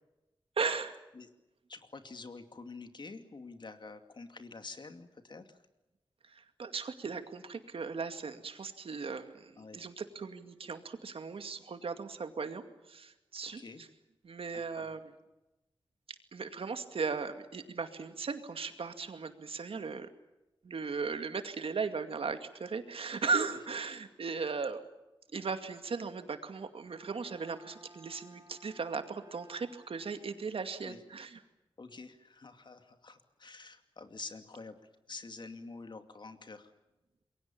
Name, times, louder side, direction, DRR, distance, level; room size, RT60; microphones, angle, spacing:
voice 1, 0.6-0.9 6.2-13.6 14.2-15.0 16.1-20.1 20.6-24.8 25.3-31.4, right 5 dB, 80° right, 8 dB, 2.3 m, -37 dB
voice 2, 1.7-5.6 9.6-9.8 13.4-13.8 14.5-14.9 30.8-31.0 31.8-34.8 35.1-36.7, left 3 dB, 55° left, 8 dB, 2.4 m, -48 dB
Bowed string instrument, 26.9-30.6, right 1 dB, 40° right, 5.3 m, -58 dB
27.5 x 22.5 x 7.2 m, 1.0 s
wide cardioid pair, 100°, 9 cm